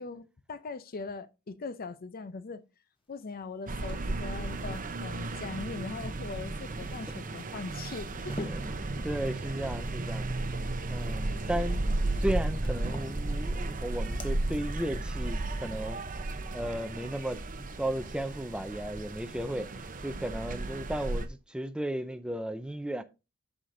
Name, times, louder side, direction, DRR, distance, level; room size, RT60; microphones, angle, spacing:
voice 1, 0.0-2.6 3.1-8.5 9.5-9.6 11.3-11.5, left 4 dB, 45° left, 0.5 m, -41 dB
sound 1, 3.2-3.3 3.6-4.9 6.3-11.2 11.5-12.3 12.6-13.6 13.9-14.3, left 1 dB, 25° left, 0.9 m, -49 dB
sound 2, 3.7-21.3, right 2 dB, 40° right, 0.7 m, -34 dB
voice 2, 8.4-10.4 10.9-11.9 12.2-16.0 16.5-17.4 17.8-23.0, right 1 dB, 5° right, 0.5 m, -35 dB
13.5 x 5.0 x 2.6 m
head